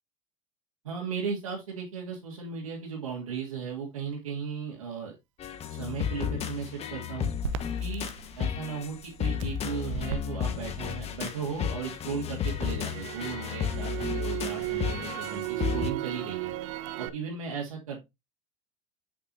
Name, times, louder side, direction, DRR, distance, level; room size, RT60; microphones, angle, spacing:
voice 1, 0.8-5.1 5.7-7.3 7.8-8.1 8.4-16.5 17.0-18.1, right 6 dB, 85° right, -4 dB, 2.2 m, -36 dB
sound 1, 5.4-15.9, left 8 dB, 35° left, 1.1 m, -33 dB
Crackle, 7.4-11.6 11.9-17.1, right 13 dB, 65° right, 0.8 m, -36 dB
7.5 x 5.9 x 2.7 m, 0.21 s
hypercardioid pair, 85°, 17 cm